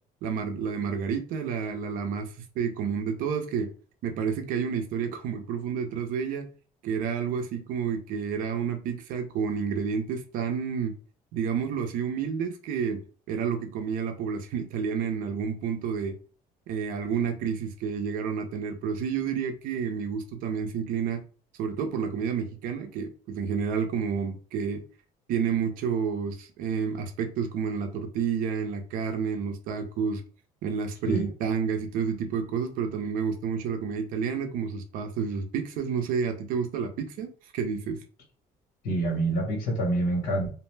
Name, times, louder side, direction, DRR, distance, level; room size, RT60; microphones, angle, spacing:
voice 1, 0.2-3.7 4.0-6.5 6.8-10.9 11.3-13.0 13.3-16.1 16.7-21.2 21.6-24.8 25.3-30.2 30.6-38.0, right 6 dB, 65° right, 5 dB, 0.6 m, -30 dB
voice 2, 38.8-40.5, right 2 dB, 75° left, 0 dB, 1.4 m, -26 dB
2.6 x 2.0 x 3.2 m, 0.38 s
cardioid pair, 165°, 15 cm